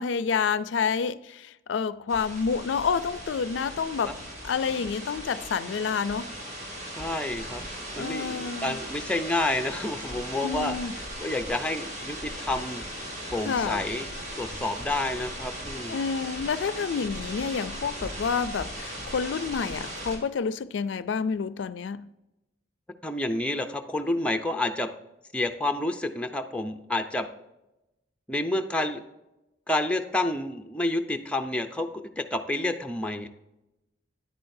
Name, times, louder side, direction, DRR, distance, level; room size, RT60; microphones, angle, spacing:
voice 1, 0.0-4.2 4.4-6.3 8.0-8.8 10.4-10.9 13.4-13.8 15.9-22.1, left 6 dB, 80° left, 0.4 m, -29 dB
sound 1, 2.1-20.2, equal, 40° right, 2.2 m, -38 dB
voice 2, 6.9-7.6 7.9-10.8 11.2-12.8 13.3-14.1 14.4-16.0 23.0-24.9 25.3-27.3 28.3-29.0 29.7-31.9 32.2-33.3, left 1 dB, 5° left, 0.5 m, -29 dB
10.0 x 8.6 x 2.6 m
head